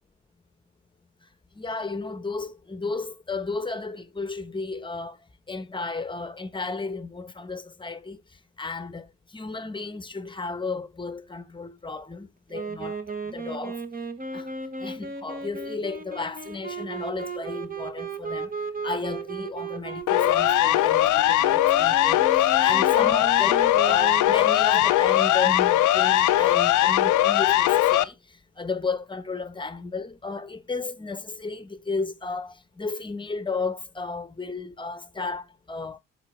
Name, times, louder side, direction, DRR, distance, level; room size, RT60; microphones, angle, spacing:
voice 1, 1.6-5.2 5.5-8.2 8.6-9.1 9.3-13.0 13.3-13.8 14.3-14.5 14.8-18.5 18.8-28.1 28.6-36.0, left 3 dB, 15° left, 1.1 m, -33 dB
Wind instrument woodwind instrument, 12.5-25.0, right 4 dB, 30° right, 1.3 m, -36 dB
Siren, 20.1-28.0, left 14 dB, 80° left, 0.7 m, -20 dB
12.0 x 4.0 x 3.3 m
cardioid pair, 90°, 30 cm